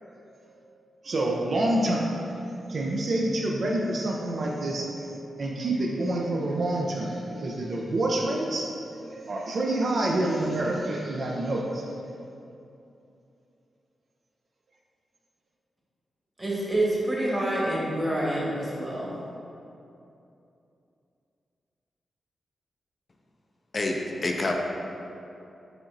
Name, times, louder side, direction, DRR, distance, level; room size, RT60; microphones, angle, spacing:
voice 1, 1.0-2.4 2.7-8.7 9.0-11.8, right 1 dB, 65° right, -1 dB, 0.4 m, -27 dB
voice 2, 16.4-19.1, right 1 dB, 25° right, -5 dB, 1.2 m, -27 dB
voice 3, 23.7-24.5, left 2 dB, 45° left, 1 dB, 0.4 m, -27 dB
4.9 x 2.9 x 2.6 m, 2.7 s
cardioid pair, 55°, 0 cm